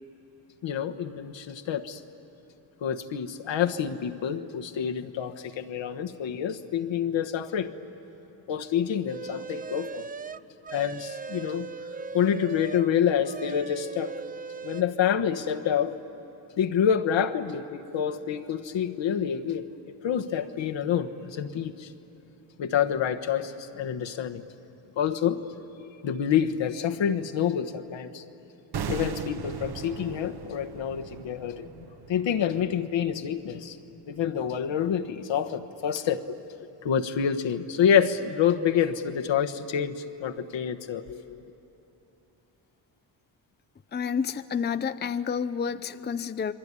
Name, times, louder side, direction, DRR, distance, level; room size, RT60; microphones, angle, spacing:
voice 1, 0.6-2.0 2.8-7.7 8.5-10.0 10.7-11.7 12.1-14.1 14.6-16.0 16.6-21.9 22.6-24.4 25.0-25.4 26.0-28.2 28.9-33.8 34.1-36.3 36.8-41.4, left 8 dB, 70° left, 6 dB, 1.3 m, -27 dB
sound 1, 9.1-12.9 13.2-14.8, right 5 dB, 20° right, 0.5 m, -39 dB
sound 2, 28.7-33.8 34.0-34.2, right 7 dB, 55° right, 1.1 m, -38 dB
voice 2, 43.9-46.5, left 6 dB, 20° left, 12 dB, 0.6 m, -29 dB
27.0 x 21.5 x 9.8 m, 3.0 s
cardioid pair, 80°, 47 cm